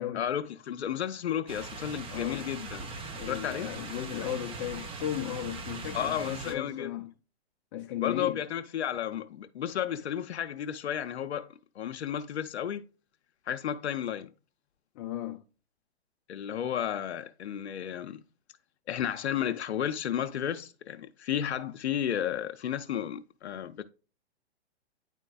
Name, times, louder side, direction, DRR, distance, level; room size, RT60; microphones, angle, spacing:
voice 1, 0.1-2.9 3.3-3.7 5.9-7.0 8.0-11.5 11.8-12.8 13.5-14.3 16.3-18.2 18.9-23.8, left 9 dB, 75° left, 0.6 m, -33 dB
sound 1, 1.5-6.5, right 3 dB, 15° right, 0.8 m, -40 dB
voice 2, 2.1-2.5 3.1-7.1 7.7-8.4 14.9-15.4, left 11 dB, 30° left, 0.6 m, -36 dB
9.8 x 4.5 x 2.3 m
hypercardioid pair, 125°, 33 cm